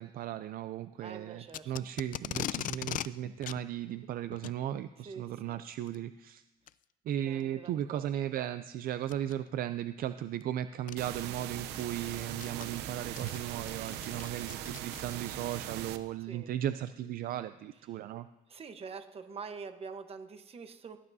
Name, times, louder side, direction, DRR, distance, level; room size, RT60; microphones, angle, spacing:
voice 1, 0.0-6.4 7.0-18.3, right 11 dB, 60° right, 12 dB, 0.4 m, -36 dB
voice 2, 1.0-1.7 5.0-5.6 7.2-8.0 16.2-16.5 17.9-18.0 18.5-21.0, right 5 dB, 35° right, 8 dB, 1.1 m, -45 dB
Packing tape duct tape, 1.5-3.1 3.4-3.6 4.3-4.6 5.7-6.0 6.7-6.8 7.4-7.5 9.0-9.3 10.4-10.5 10.9-11.0 11.5-15.4, left 12 dB, 55° left, 0.4 m, -40 dB
sound 1, 11.0-16.0, right 11 dB, 90° right, 0.7 m, -40 dB
17.5 x 11.0 x 2.7 m, 1.1 s
cardioid pair, 110°, 17 cm